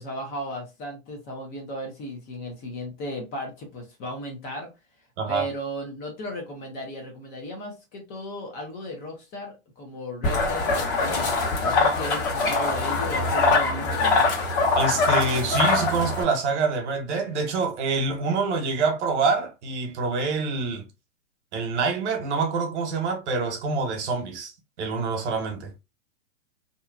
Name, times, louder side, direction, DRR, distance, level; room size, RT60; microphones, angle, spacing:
voice 1, 0.0-4.7 5.3-14.4, equal, 25° left, 0.7 m, -35 dB
voice 2, 5.2-5.5 14.7-20.8 21.5-24.5 24.8-25.7, right 4 dB, 60° right, 1.1 m, -26 dB
sound 1, 10.2-16.2, left 3 dB, 40° left, 1.2 m, -23 dB
2.8 x 2.3 x 2.4 m
hypercardioid pair, 135°, 39 cm